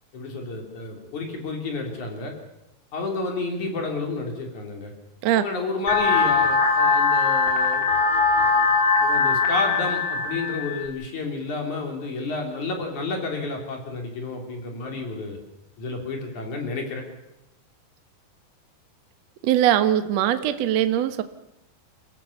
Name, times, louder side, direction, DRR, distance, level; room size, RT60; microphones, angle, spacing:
voice 1, 0.1-2.3 2.9-4.9 5.3-7.8 9.0-15.4 15.8-17.0, left 3 dB, 45° left, 2 dB, 4.5 m, -30 dB
sound 1, 5.9-10.9, left 4 dB, 30° left, 3.1 m, -21 dB
voice 2, 19.4-21.2, right 11 dB, 85° right, 10 dB, 1.5 m, -21 dB
28.5 x 15.0 x 7.3 m, 0.90 s
omnidirectional pair, 5.0 m